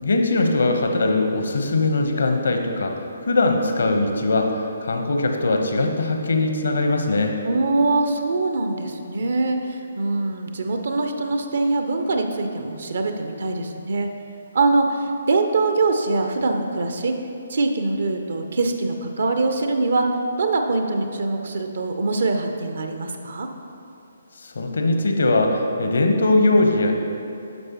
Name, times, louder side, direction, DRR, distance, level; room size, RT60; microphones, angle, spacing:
voice 1, 0.0-2.9 3.3-7.4 24.4-26.9, left 2 dB, 60° left, 3 dB, 0.8 m, -21 dB
voice 2, 7.4-14.1 14.5-17.1 17.5-20.1 20.4-23.5, right 3 dB, 55° right, 5 dB, 0.6 m, -23 dB
10.5 x 6.5 x 2.9 m, 2.7 s
figure-of-eight pair, 135°, 0 cm